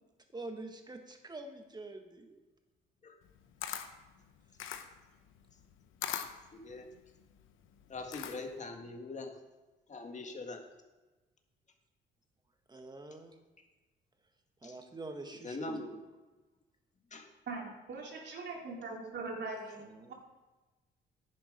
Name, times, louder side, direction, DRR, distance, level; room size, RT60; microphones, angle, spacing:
voice 1, 0.3-2.4 12.7-13.4 14.6-15.9 19.8-20.1, right 2 dB, 20° right, 5 dB, 1.7 m, -46 dB
Camera, 3.2-8.7, left 9 dB, 85° left, 0.9 m, -42 dB
voice 2, 6.5-6.9 7.9-9.4 9.9-10.6 14.6-14.8 15.4-16.0 17.1-17.3, left 2 dB, 35° left, 4 dB, 1.8 m, -42 dB
voice 3, 17.5-20.1, right 3 dB, 60° right, -1 dB, 2.8 m, -41 dB
10.5 x 8.5 x 5.3 m, 1.2 s
cardioid pair, 90°, 20 cm